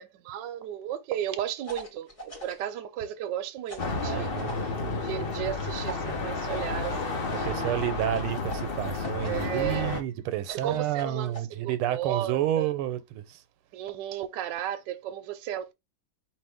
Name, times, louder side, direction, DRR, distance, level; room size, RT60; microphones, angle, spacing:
voice 1, 0.0-4.8 5.0-7.7 9.3-10.0 10.5-12.7 13.7-15.7, right 11 dB, 70° right, 1.2 m, -34 dB
sound 1, 1.6-2.7 3.7-4.6 5.7-7.0 8.1-9.5 10.4-11.4, right 1 dB, 25° left, 0.8 m, -43 dB
sound 2, 3.8-10.0, left 3 dB, 85° left, 0.5 m, -31 dB
voice 2, 4.0-4.5 7.4-13.4, right 12 dB, 85° right, 1.5 m, -30 dB
5.0 x 3.0 x 3.4 m
omnidirectional pair, 2.3 m